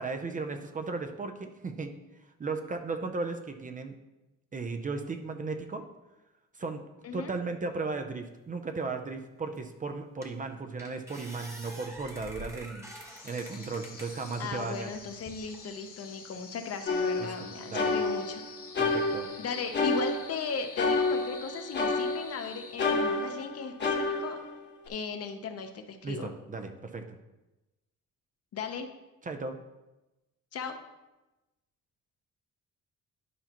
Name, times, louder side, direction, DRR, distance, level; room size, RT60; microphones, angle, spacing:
voice 1, 0.0-1.9 2.4-3.9 4.5-5.8 6.6-6.8 7.1-12.9 13.2-14.9 17.2-17.3 17.7-17.9 18.8-19.3 26.0-27.2 29.2-29.6, right 4 dB, 25° right, 5 dB, 0.5 m, -36 dB
sound 1, 9.6-9.7 10.2-10.5 10.8-14.4 14.9-15.6, equal, 10° right, 1.1 m, -47 dB
sound 2, 13.0-23.3, left 5 dB, 85° left, 1.7 m, -48 dB
voice 2, 14.4-18.4 19.4-24.4 24.9-26.3 28.5-28.9 30.5-30.8, left 5 dB, 50° left, 6 dB, 0.8 m, -37 dB
sound 3, 16.9-18.4 18.7-20.5 20.8-22.4 22.8-24.9, left 3 dB, 35° left, 1.1 m, -29 dB
11.0 x 5.5 x 2.9 m, 1.0 s
cardioid pair, 145°, 30 cm